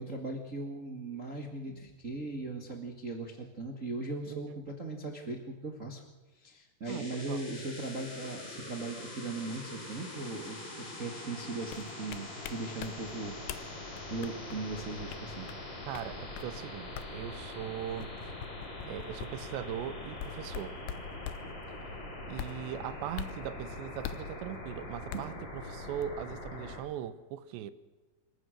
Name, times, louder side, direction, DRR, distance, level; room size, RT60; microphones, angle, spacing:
voice 1, 0.0-6.0 6.3-15.5 25.1-25.2, right 3 dB, 65° right, 0.8 m, -39 dB
voice 2, 4.3-4.6 6.9-7.4 15.9-18.1 18.9-20.8 22.3-27.7, right 10 dB, 90° right, 3.3 m, -40 dB
sound 1, 6.8-26.8, left 2 dB, 30° left, 4.2 m, -43 dB
sound 2, 11.7-12.9 13.5-13.7 14.0-15.6 15.9-16.1 16.4-16.5 16.9-17.1 18.0-19.3 20.1-21.4 22.3-22.6 23.2-23.4 24.0-24.3 25.1-25.3 26.0-26.1, left 12 dB, 80° left, 3.1 m, -41 dB
27.5 x 15.5 x 6.5 m
omnidirectional pair, 4.9 m